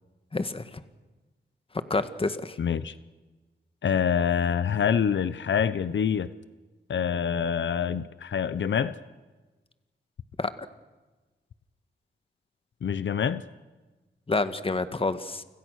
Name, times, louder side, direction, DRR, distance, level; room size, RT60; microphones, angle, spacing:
voice 1, 0.3-0.6 1.9-2.6 10.4-10.5 14.3-15.4, left 3 dB, 30° left, 11 dB, 1.6 m, -28 dB
voice 2, 2.6-2.9 3.8-6.3 6.9-8.9 12.8-13.4, left 7 dB, 85° left, 14 dB, 1.0 m, -26 dB
29.5 x 26.0 x 6.5 m, 1.2 s
wide cardioid pair, 110°, 19 cm